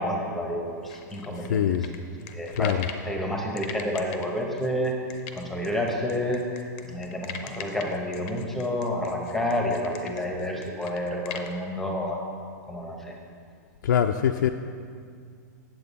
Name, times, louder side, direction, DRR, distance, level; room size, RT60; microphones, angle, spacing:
voice 1, 0.0-1.8 2.3-2.8 3.0-12.3 12.7-13.2, left 1 dB, ahead, 0 dB, 0.8 m, -29 dB
sound 1, 0.9-3.1 3.6-11.5, left 8 dB, 35° left, 0.6 m, -41 dB
voice 2, 1.5-1.9 2.5-2.9 13.8-14.5, left 9 dB, 85° left, 5 dB, 0.4 m, -23 dB
8.8 x 7.6 x 4.0 m, 2.2 s
supercardioid pair, 165°, 10 cm